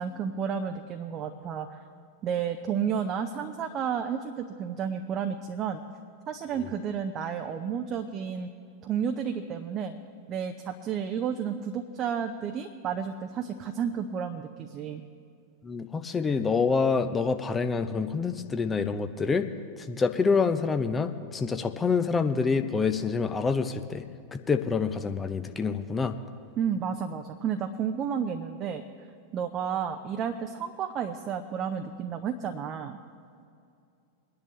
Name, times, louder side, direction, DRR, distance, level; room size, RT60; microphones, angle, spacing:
voice 1, 0.0-1.8 2.2-5.8 6.3-8.5 8.8-10.0 10.3-15.0 26.6-28.8 29.3-33.0, right 7 dB, 30° right, 5 dB, 0.7 m, -31 dB
voice 2, 15.6-19.5 19.8-24.0 24.3-26.2, left 5 dB, 15° left, 8 dB, 0.7 m, -27 dB
22.5 x 10.5 x 3.4 m, 2.4 s
figure-of-eight pair, 90°, 0 cm